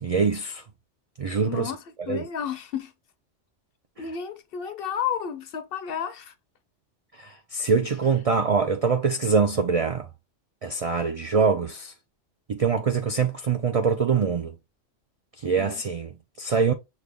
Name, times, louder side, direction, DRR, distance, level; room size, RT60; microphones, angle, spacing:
voice 1, 0.0-0.6 1.2-1.7 2.1-2.3 7.2-10.1 10.6-11.9 12.5-14.5 15.4-16.7, right 5 dB, 70° right, 0.3 m, -24 dB
voice 2, 1.4-2.9 4.0-6.3 15.6-15.7, left 8 dB, 60° left, 0.7 m, -32 dB
6.3 x 2.2 x 3.5 m
omnidirectional pair, 1.2 m